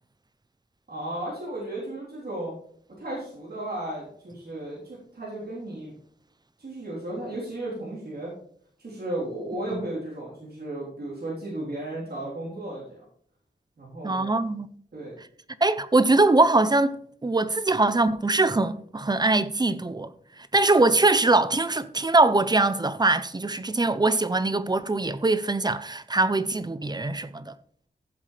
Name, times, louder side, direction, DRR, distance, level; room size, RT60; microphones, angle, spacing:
voice 1, 0.9-2.5 3.0-5.9 6.6-8.3 8.8-13.1 13.8-14.3 14.9-15.1, right 1 dB, 55° right, 3.6 m, -34 dB
voice 2, 14.0-14.7 15.6-20.1 20.5-27.5, right 2 dB, 20° right, 0.6 m, -22 dB
15.0 x 7.5 x 3.3 m
wide cardioid pair, 105°, 19 cm